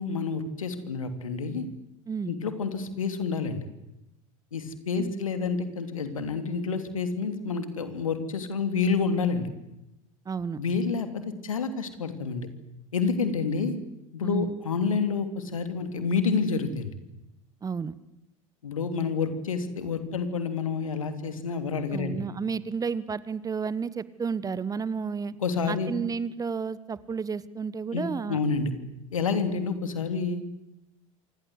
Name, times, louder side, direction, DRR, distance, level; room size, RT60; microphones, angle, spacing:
voice 1, 0.0-1.7 2.3-3.6 4.5-9.5 10.6-12.5 12.9-13.8 14.1-16.9 18.6-22.2 25.4-25.9 27.9-28.7 29.1-30.4, left 5 dB, 75° left, 9 dB, 3.1 m, -29 dB
voice 2, 10.2-10.6 14.2-14.5 17.6-17.9 21.9-25.3 25.7-28.4, right 5 dB, 20° right, 18 dB, 1.3 m, -31 dB
27.5 x 26.0 x 8.2 m, 0.91 s
figure-of-eight pair, 75°, 17 cm